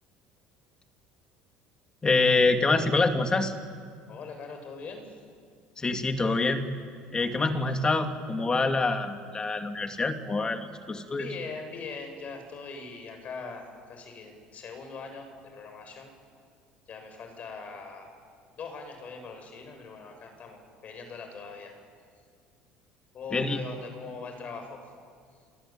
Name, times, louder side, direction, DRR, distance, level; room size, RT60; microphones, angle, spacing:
voice 1, 2.0-3.5 5.8-6.7 7.1-11.3 23.3-23.6, left 3 dB, 25° left, 5 dB, 2.8 m, -26 dB
voice 2, 4.1-5.2 7.2-7.8 11.1-16.1 16.9-18.2 18.5-21.7 23.1-24.8, left 4 dB, 45° left, 5 dB, 7.5 m, -41 dB
29.0 x 22.0 x 9.0 m, 2.1 s
supercardioid pair, 95°, 3 cm